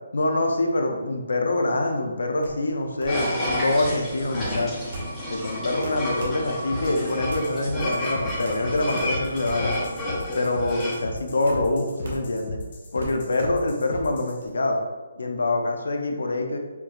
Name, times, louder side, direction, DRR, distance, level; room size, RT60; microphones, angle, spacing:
voice 1, 0.1-4.7 5.3-9.8 10.3-12.6 12.9-14.8 15.2-16.6, left 2 dB, 85° left, 3 dB, 0.6 m, -25 dB
sound 1, 2.3-14.5, right 1 dB, 60° right, 1.1 m, -40 dB
sound 2, 3.1-11.0, left 1 dB, 5° left, 1.0 m, -31 dB
sound 3, 6.7-14.4, left 2 dB, 35° left, 0.6 m, -37 dB
4.5 x 2.8 x 2.5 m, 1.3 s
hypercardioid pair, 170°, 0 cm